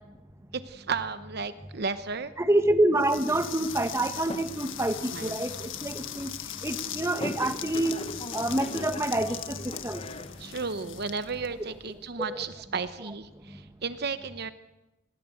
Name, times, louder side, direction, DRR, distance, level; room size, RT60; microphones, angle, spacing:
voice 1, 0.5-2.3 5.1-5.4 10.4-14.5, right 5 dB, 55° right, 11 dB, 0.9 m, -33 dB
voice 2, 2.4-6.3 6.6-8.0 8.3-10.0 12.3-12.4 13.5-13.6, right 1 dB, 15° right, 8 dB, 1.6 m, -27 dB
sound 1, 3.0-12.0, left 11 dB, 90° left, 1.6 m, -40 dB
sound 2, 3.3-10.7, left 2 dB, 30° left, 1.3 m, -42 dB
26.0 x 20.5 x 7.9 m, 1.0 s
head